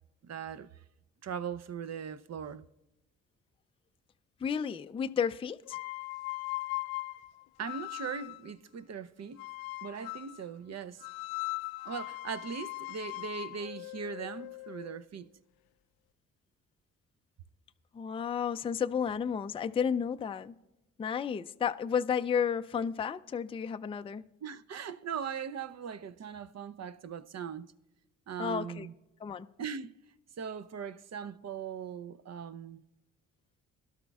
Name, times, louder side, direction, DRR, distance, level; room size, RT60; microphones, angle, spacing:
voice 1, 0.2-0.7 1.2-2.6 7.6-9.4 9.8-11.0 11.9-15.3 24.4-27.7 28.3-28.9 29.6-29.9 30.4-32.8, right 7 dB, 45° right, 0.7 m, -39 dB
voice 2, 4.4-5.8 17.9-20.6 21.0-24.2 28.4-28.9 29.2-29.5, left 7 dB, 15° left, 0.4 m, -32 dB
sound 1, 5.7-8.5 9.4-10.4 11.0-15.0, left 22 dB, 75° left, 0.5 m, -39 dB
22.0 x 12.0 x 2.4 m
hypercardioid pair, 45°, 37 cm